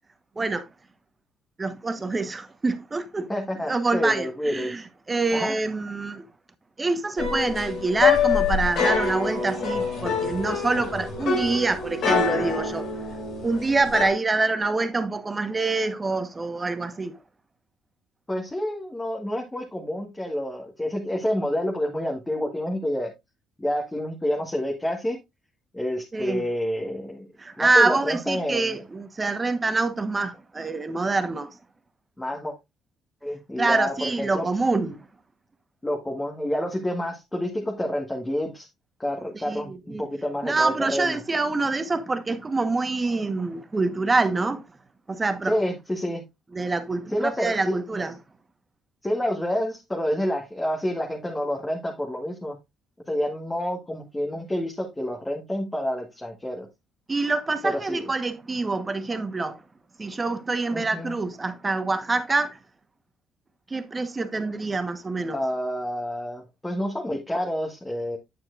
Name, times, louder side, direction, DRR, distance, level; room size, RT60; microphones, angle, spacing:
voice 1, 0.4-0.7 1.6-3.3 3.6-6.3 6.8-12.9 13.4-17.2 26.1-26.5 27.4-31.6 33.6-35.1 39.3-40.1 40.4-44.6 45.1-45.6 46.5-48.1 57.1-59.6 60.0-62.6 63.7-65.4, right 3 dB, 25° right, 1.1 m, -26 dB
voice 2, 3.3-4.8 5.3-5.5 18.3-23.1 23.6-25.2 25.7-27.2 27.6-28.7 32.2-32.5 33.2-34.5 35.8-38.7 39.0-41.2 45.5-46.2 47.1-47.8 49.0-52.6 53.1-56.7 57.6-58.1 60.7-61.1 65.3-68.2, equal, 10° left, 1.5 m, -28 dB
sound 1, 7.2-14.1, left 5 dB, 65° left, 3.1 m, -25 dB
8.8 x 7.4 x 2.5 m
cardioid pair, 90°, 0 cm